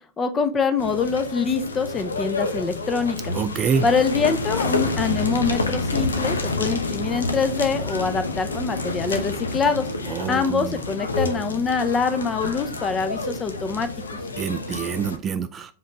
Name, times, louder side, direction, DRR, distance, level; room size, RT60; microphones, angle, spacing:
voice 1, 0.2-3.3 3.8-9.9 10.3-14.2, left 5 dB, 20° left, 9 dB, 0.9 m, -24 dB
sound 1, 0.8-15.2, left 2 dB, 75° left, 0.9 m, -28 dB
voice 2, 3.3-3.9 10.1-10.7 14.4-15.7, right 6 dB, 25° right, 10 dB, 0.4 m, -26 dB
7.4 x 3.9 x 3.3 m, 0.41 s
figure-of-eight pair, 90°, 0 cm